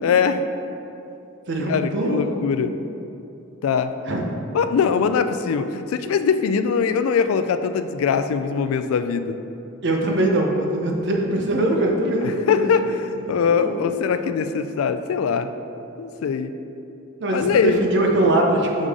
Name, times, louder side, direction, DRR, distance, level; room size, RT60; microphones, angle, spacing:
voice 1, 0.0-0.4 1.7-2.7 3.6-3.9 4.5-9.4 12.2-15.5 16.0-16.6 17.3-17.8, left 6 dB, 80° left, 10 dB, 0.3 m, -22 dB
voice 2, 1.5-2.2 4.1-4.2 9.8-12.7 13.3-13.7 17.2-18.9, right 1 dB, 60° right, 1 dB, 0.8 m, -22 dB
6.4 x 5.2 x 3.7 m, 2.8 s
head